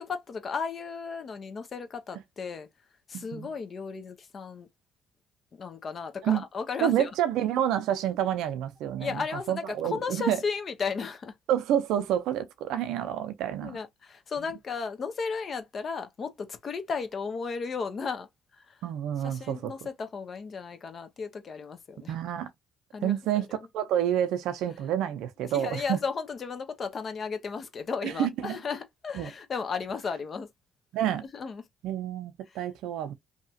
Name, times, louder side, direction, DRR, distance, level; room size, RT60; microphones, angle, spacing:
voice 1, 0.0-2.7 3.1-4.7 5.5-7.1 9.0-11.3 13.6-18.8 19.2-22.1 22.9-23.7 24.8-24.9 25.4-30.5 31.3-31.6 32.5-32.6, left 5 dB, 45° left, 0.8 m, -35 dB
voice 2, 3.1-3.5 6.2-6.4 6.8-10.4 11.5-13.8 18.8-19.7 22.1-22.5 23.0-23.5 23.7-26.0 28.0-28.6 29.1-29.3 30.9-31.2 31.8-33.1, right 11 dB, 75° right, 0.5 m, -28 dB
2.8 x 2.3 x 2.7 m
supercardioid pair, 70°, 0 cm